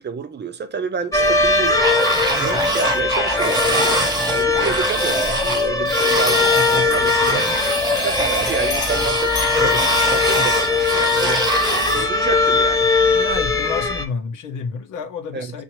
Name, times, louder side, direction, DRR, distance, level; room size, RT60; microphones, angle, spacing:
voice 1, 0.0-1.8 2.4-7.5 8.0-11.4 11.9-12.9 15.3-15.5, right 5 dB, 35° right, 0.6 m, -29 dB
sound 1, 1.1-14.0, left 3 dB, 10° left, 0.7 m, -20 dB
sound 2, 1.8-12.1, right 1 dB, 15° right, 1.0 m, -24 dB
Bell, 5.2-5.9 6.2-10.7, left 4 dB, 50° left, 1.1 m, -36 dB
voice 2, 13.1-15.6, left 5 dB, 85° left, 1.1 m, -30 dB
5.8 x 2.6 x 2.9 m
cardioid pair, 90°, 30 cm